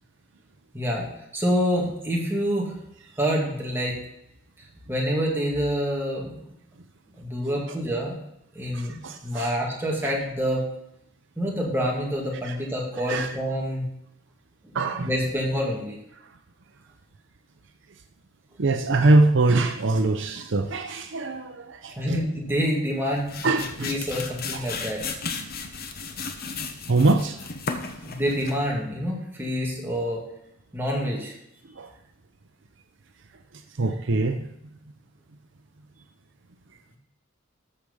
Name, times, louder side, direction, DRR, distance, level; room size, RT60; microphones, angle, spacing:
voice 1, 0.7-1.1 1.3-2.7 3.2-4.0 4.9-6.4 7.2-8.2 8.5-10.6 11.4-13.9 14.6-14.7 15.0-16.0 22.0-23.3 23.8-25.0 28.0-30.2 30.7-31.3, equal, 10° right, -3 dB, 2.4 m, -27 dB
voice 2, 8.7-9.5 10.0-10.1 13.1-13.3 14.7-15.1 18.6-22.2 23.4-23.9 26.9-27.4 31.8-31.9 33.8-34.4, right 2 dB, 65° right, 6 dB, 0.7 m, -23 dB
sound 1, 22.9-28.7, left 4 dB, 50° left, 1.0 m, -34 dB
13.0 x 4.9 x 5.5 m, 0.80 s
head